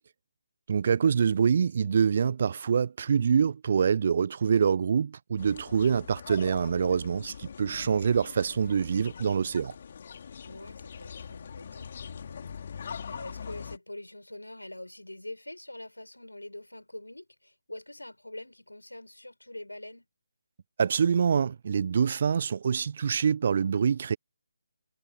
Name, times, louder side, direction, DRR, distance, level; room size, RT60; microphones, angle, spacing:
voice 1, 0.7-9.7 20.8-24.2, right 6 dB, 40° right, 1.0 m, -25 dB
sound 1, 5.4-13.8, left 7 dB, 40° left, 3.8 m, -42 dB
voice 2, 10.4-20.1, left 1 dB, 80° left, 7.2 m, -45 dB
figure-of-eight pair, 145°, 0 cm